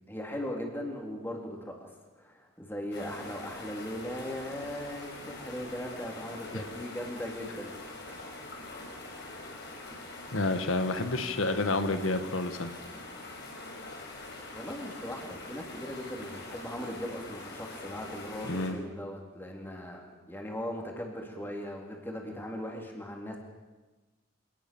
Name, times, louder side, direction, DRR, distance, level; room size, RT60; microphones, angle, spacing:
voice 1, 0.1-1.9 2.2-7.7 14.5-23.4, equal, 10° left, 1 dB, 3.8 m, -39 dB
sound 1, 2.9-18.7, left 2 dB, 55° left, 5.2 m, -44 dB
voice 2, 10.3-12.7 18.5-18.8, left 2 dB, 85° left, 9 dB, 1.5 m, -29 dB
26.0 x 19.5 x 7.2 m, 1.2 s
head